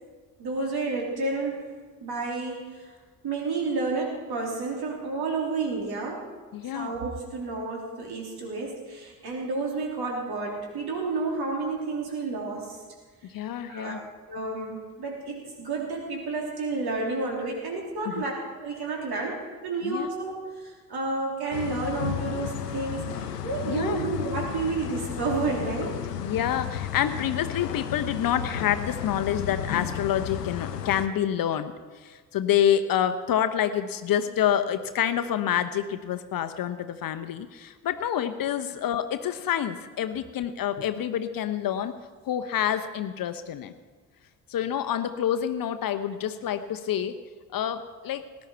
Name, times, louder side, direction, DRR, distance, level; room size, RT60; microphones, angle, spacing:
voice 1, 0.4-1.7 2.0-2.9 3.2-6.3 6.7-12.8 13.7-14.0 14.3-26.0, right 3 dB, 50° right, 0 dB, 3.6 m, -30 dB
voice 2, 6.5-6.9 13.3-14.0 18.1-18.2 19.8-20.1 23.6-24.0 26.2-42.0 42.2-43.7 44.5-47.1 47.5-48.3, left 10 dB, 45° left, 10 dB, 0.9 m, -27 dB
sound 1, 21.5-31.1, left 9 dB, 80° left, 0.8 m, -33 dB
18.5 x 10.5 x 4.5 m, 1.4 s
figure-of-eight pair, 40°, 47 cm